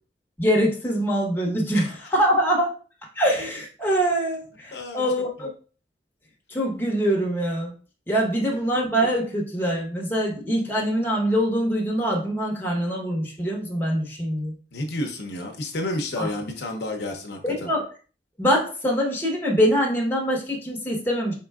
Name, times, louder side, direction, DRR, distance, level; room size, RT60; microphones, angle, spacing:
voice 1, 0.4-2.7 3.2-5.5 6.5-7.7 8.1-14.5 16.2-16.3 17.4-17.9 18.4-21.3, equal, 10° left, -2 dB, 0.9 m, -24 dB
voice 2, 4.7-5.1 14.7-17.7, left 1 dB, 70° left, 2 dB, 0.8 m, -31 dB
4.4 x 3.7 x 2.3 m, 0.38 s
head